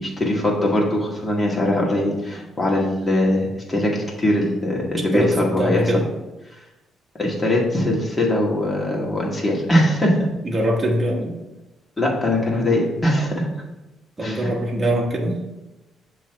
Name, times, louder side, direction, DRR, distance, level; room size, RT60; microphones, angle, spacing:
voice 1, 0.0-5.8 7.1-10.2 12.0-13.5 14.2-14.5, left 1 dB, 25° left, -2 dB, 1.9 m, -21 dB
voice 2, 5.1-6.1 10.4-11.4 14.2-15.5, right 1 dB, 25° right, -2 dB, 1.1 m, -23 dB
7.1 x 3.1 x 5.8 m, 1.0 s
cardioid pair, 90°, 0 cm